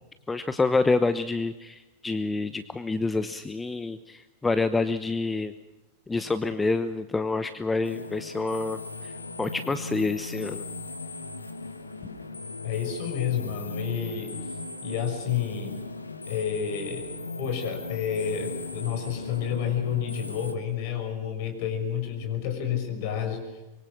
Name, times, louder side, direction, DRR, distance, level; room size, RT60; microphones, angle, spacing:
voice 1, 0.3-5.5 6.1-9.1 9.4-10.6, left 3 dB, 10° left, 12 dB, 1.0 m, -27 dB
sound 1, 7.8-20.5, left 3 dB, 80° left, 1.4 m, -38 dB
voice 2, 12.6-15.8 16.3-23.6, left 8 dB, 50° left, 6 dB, 5.8 m, -30 dB
25.0 x 23.5 x 6.3 m, 1.1 s
figure-of-eight pair, 90°, 0 cm